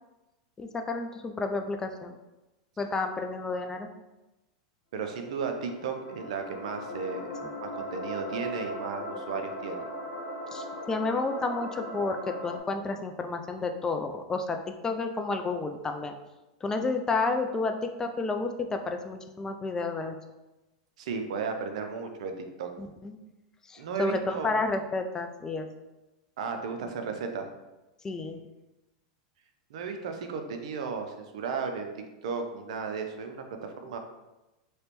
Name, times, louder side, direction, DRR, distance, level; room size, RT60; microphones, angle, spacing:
voice 1, 0.6-2.1 2.8-3.9 10.5-16.1 16.6-20.2 22.8-23.2 23.7-25.7 28.0-28.4, left 3 dB, 15° left, 5 dB, 0.3 m, -31 dB
voice 2, 4.9-7.3 7.6-9.8 21.0-22.7 23.8-24.5 26.4-27.5 29.7-34.0, right 5 dB, 70° right, 5 dB, 0.5 m, -34 dB
sound 1, 5.3-12.6, equal, 80° left, 0.9 m, -38 dB
3.2 x 2.9 x 3.0 m, 1.0 s
hypercardioid pair, 115°, 4 cm